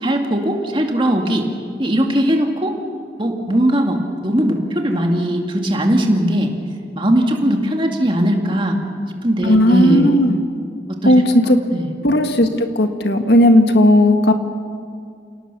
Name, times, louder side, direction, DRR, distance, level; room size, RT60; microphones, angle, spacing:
voice 1, 0.0-1.5 1.8-2.8 3.2-6.5 7.0-8.8 9.2-10.1 11.0-11.1 11.7-11.9, right 1 dB, 30° right, 2 dB, 2.2 m, -19 dB
voice 2, 9.4-10.4 11.0-11.2 11.5-11.6 12.0-14.3, left 1 dB, 65° left, 6 dB, 1.7 m, -14 dB
28.5 x 18.0 x 6.9 m, 2.2 s
head